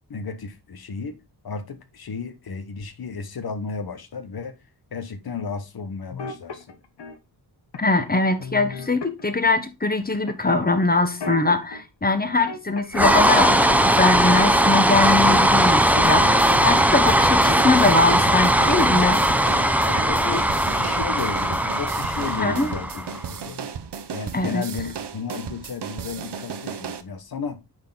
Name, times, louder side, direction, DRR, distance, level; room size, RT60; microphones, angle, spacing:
voice 1, 0.1-1.2 1.4-4.6 4.9-6.8 19.9-20.5 20.7-23.7 24.1-27.6, left 5 dB, 65° left, 1.2 m, -33 dB
sound 1, 6.1-7.2 7.7-8.1 8.4-9.7 10.3-11.8 12.2-13.1 13.4-15.6 15.9-20.8 21.2-21.8 22.1-23.2 23.4-23.7, left 5 dB, 80° left, 1.3 m, -37 dB
voice 2, 7.8-19.2 22.3-22.7 24.3-24.6, left 3 dB, 25° left, 1.4 m, -22 dB
sound 2, 12.9-23.2, right 1 dB, 5° right, 0.7 m, -19 dB
sound 3, 16.0-27.0, right 7 dB, 85° right, 0.9 m, -35 dB
9.4 x 4.5 x 4.0 m
wide cardioid pair, 90°, 40 cm